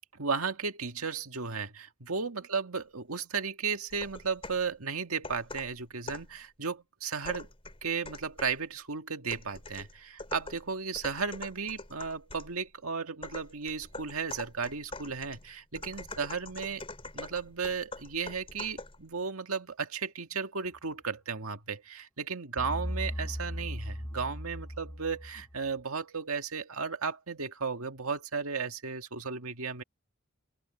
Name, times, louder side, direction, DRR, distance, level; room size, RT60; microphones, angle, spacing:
voice 1, 0.1-7.5 7.8-16.8 17.1-29.8, right 5 dB, 85° right, 2.0 m, -35 dB
sound 1, 3.9-4.7 5.2-6.4 7.2-8.6 9.3-12.6 13.2-19.0, left 3 dB, 25° left, 5.1 m, -44 dB
sound 2, 22.6-25.7, equal, 10° left, 1.4 m, -37 dB
open air
head